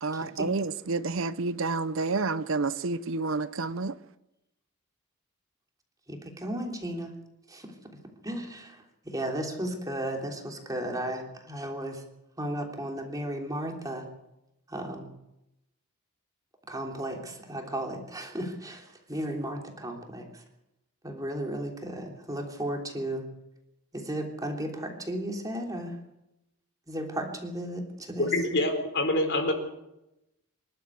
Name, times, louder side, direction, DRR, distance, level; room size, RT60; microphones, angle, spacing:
voice 1, 0.0-4.0, right 3 dB, 60° right, 15 dB, 0.7 m, -29 dB
voice 2, 6.1-7.1 7.5-7.7 8.2-12.0 12.4-14.1 14.7-15.1 16.7-20.4 21.0-23.2 23.9-26.0 26.9-28.3, right 1 dB, 15° right, 2 dB, 3.2 m, -34 dB
voice 3, 28.2-29.5, left 1 dB, 55° left, 5 dB, 4.2 m, -26 dB
25.5 x 12.5 x 8.4 m, 0.89 s
head